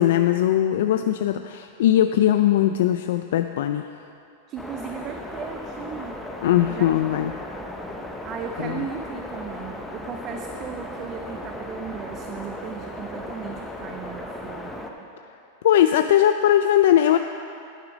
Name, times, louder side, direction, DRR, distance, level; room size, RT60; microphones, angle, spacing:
voice 1, 0.0-3.9 6.4-7.3 8.6-8.8 15.6-17.2, left 11 dB, 70° left, 8 dB, 0.3 m, -19 dB
voice 2, 4.5-6.2 6.7-7.3 8.2-14.7, right 7 dB, 30° right, 5 dB, 0.4 m, -36 dB
sound 1, 4.6-14.9, left 1 dB, 5° left, 0.7 m, -36 dB
10.5 x 8.2 x 5.1 m, 2.6 s
supercardioid pair, 155°, 0 cm